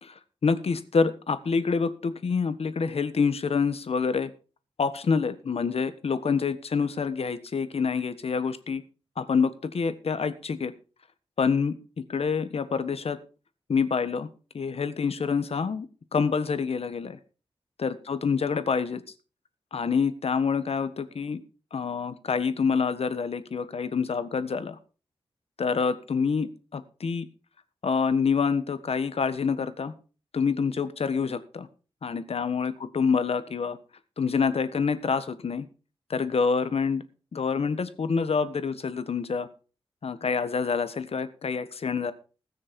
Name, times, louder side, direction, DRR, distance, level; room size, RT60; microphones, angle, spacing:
voice 1, 0.0-4.3 4.8-8.8 9.2-10.7 11.4-11.7 12.1-13.2 13.7-14.3 14.5-15.9 16.1-17.2 17.8-19.0 19.7-21.4 21.7-24.8 25.6-27.3 27.8-29.9 30.3-31.7 32.0-33.8 34.2-35.7 36.1-37.0 37.3-39.5 40.0-42.1, left 5 dB, 75° left, 11 dB, 1.4 m, -27 dB
20.0 x 6.6 x 5.3 m, 0.37 s
wide cardioid pair, 100°, 10 cm